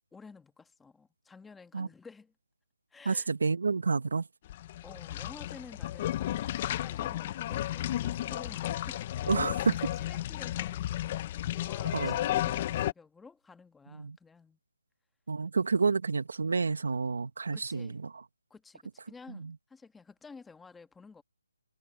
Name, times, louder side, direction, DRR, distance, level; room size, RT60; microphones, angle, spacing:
voice 1, 0.1-2.3 2.9-3.3 4.8-9.0 9.9-14.6 17.5-18.0 18.5-21.2, left 4 dB, 5° left, 1.4 m, -52 dB
voice 2, 3.0-4.3 9.3-9.9 11.9-12.2 13.9-14.2 15.3-18.2 19.3-19.5, right 4 dB, 60° right, 1.5 m, -29 dB
sound 1, 4.4-12.9, left 13 dB, 25° left, 0.6 m, -33 dB
hypercardioid pair, 170°, 0 cm